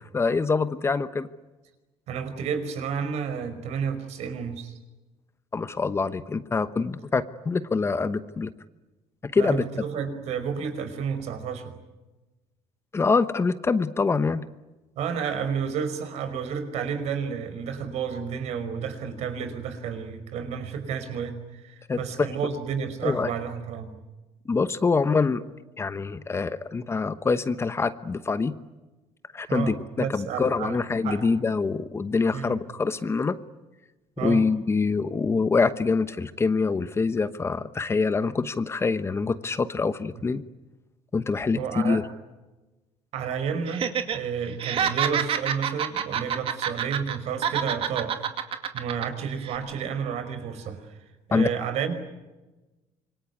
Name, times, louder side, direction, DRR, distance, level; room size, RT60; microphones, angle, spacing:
voice 1, 0.1-1.3 5.5-8.5 9.2-9.6 12.9-14.4 21.9-22.0 23.0-23.3 24.5-25.4 25.8-28.5 29.3-33.4 34.2-40.4 41.1-41.6 41.8-42.0 51.3-51.5, left 4 dB, 20° left, 12 dB, 1.0 m, -25 dB
voice 2, 2.1-4.7 9.3-11.8 14.9-24.0 29.5-30.8 31.0-31.3 32.3-32.6 34.2-34.4 41.5-42.0 43.1-48.2 48.7-50.9 51.3-51.9, right 7 dB, 65° right, 8 dB, 5.2 m, -31 dB
Laughter, 43.7-44.2 44.5-47.2 47.4-49.1 49.4-49.6, right 8 dB, 50° right, 2.4 m, -27 dB
26.5 x 23.5 x 9.5 m, 1.1 s
cardioid pair, 135°, 12 cm